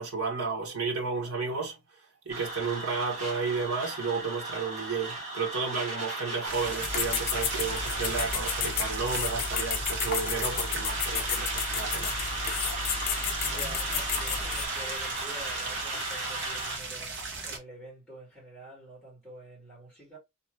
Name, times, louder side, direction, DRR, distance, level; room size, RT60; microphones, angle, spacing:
voice 1, 0.0-1.8 2.2-12.1, right 4 dB, 85° right, 1.2 m, -32 dB
sound 1, 2.3-16.8, right 2 dB, 30° right, 1.4 m, -36 dB
sound 2, 6.5-17.6, right 3 dB, 50° right, 1.1 m, -37 dB
sound 3, 6.8-14.7, left 7 dB, 40° left, 0.5 m, -32 dB
voice 2, 13.4-20.2, right 1 dB, ahead, 2.1 m, -47 dB
3.4 x 2.9 x 3.1 m
head